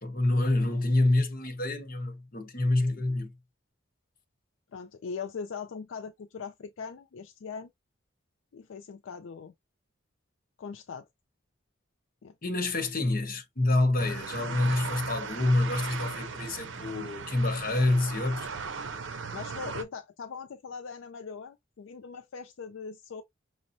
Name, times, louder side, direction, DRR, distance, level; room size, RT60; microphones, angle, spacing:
voice 1, 0.0-3.3 12.4-18.5, left 2 dB, 45° left, 1.0 m, -27 dB
voice 2, 4.7-7.7 8.5-9.5 10.6-11.1 12.2-12.3 19.3-23.2, left 5 dB, 80° left, 0.4 m, -40 dB
sound 1, 14.0-19.8, right 5 dB, 70° right, 0.6 m, -38 dB
6.0 x 2.1 x 2.6 m
head